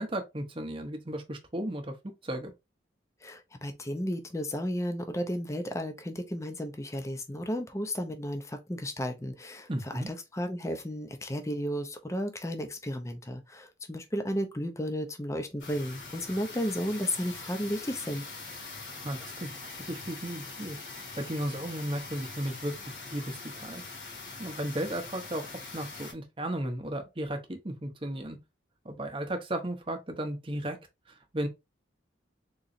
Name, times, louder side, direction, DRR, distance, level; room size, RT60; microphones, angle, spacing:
voice 1, 0.0-1.9 2.2-2.5 9.7-10.1 18.9-20.8 21.2-22.7 23.1-23.8 24.4-28.4 28.8-30.8 31.1-31.5, right 1 dB, 30° right, 0.8 m, -35 dB
voice 2, 3.2-18.2, equal, 15° left, 0.5 m, -33 dB
sound 1, 15.6-26.1, left 3 dB, 70° left, 1.6 m, -43 dB
3.9 x 3.0 x 2.6 m
head